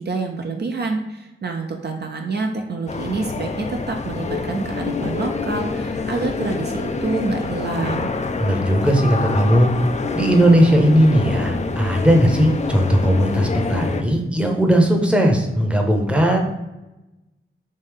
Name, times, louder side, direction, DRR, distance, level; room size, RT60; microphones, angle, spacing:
voice 1, 0.0-8.1, right 3 dB, 50° right, 2 dB, 0.5 m, -27 dB
sound 1, 2.9-14.0, left 4 dB, 35° left, 0.4 m, -26 dB
voice 2, 8.4-9.7 10.1-16.4, equal, 5° right, 2 dB, 0.7 m, -17 dB
3.3 x 2.7 x 3.4 m, 1.0 s
cardioid pair, 50°, 21 cm